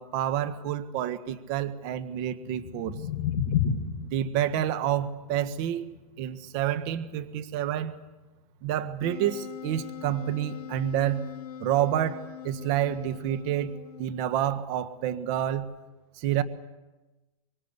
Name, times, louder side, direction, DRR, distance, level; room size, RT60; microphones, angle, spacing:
voice 1, 0.0-3.0 4.0-8.0 8.6-11.3 11.6-15.7 16.2-16.4, right 11 dB, 45° right, 12 dB, 1.5 m, -29 dB
sound 1, 2.4-8.5, left 8 dB, 60° left, 4.6 m, -33 dB
Wind instrument woodwind instrument, 9.0-14.4, left 9 dB, 85° left, 1.7 m, -42 dB
25.0 x 23.5 x 8.2 m, 1.1 s
hypercardioid pair, 140°, 19 cm